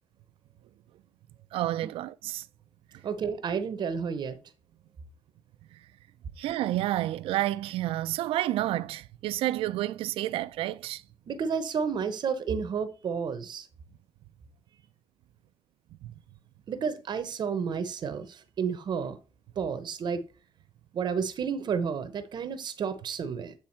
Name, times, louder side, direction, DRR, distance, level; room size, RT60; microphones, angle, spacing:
voice 1, 1.5-2.4 6.4-11.0 16.0-16.1, right 14 dB, 75° right, 0.5 m, -30 dB
voice 2, 3.0-4.4 11.3-13.7 16.7-19.2 19.6-20.2 20.9-23.5, right 6 dB, 50° right, 0.8 m, -31 dB
8.7 x 3.4 x 4.4 m
cardioid pair, 95°, 9 cm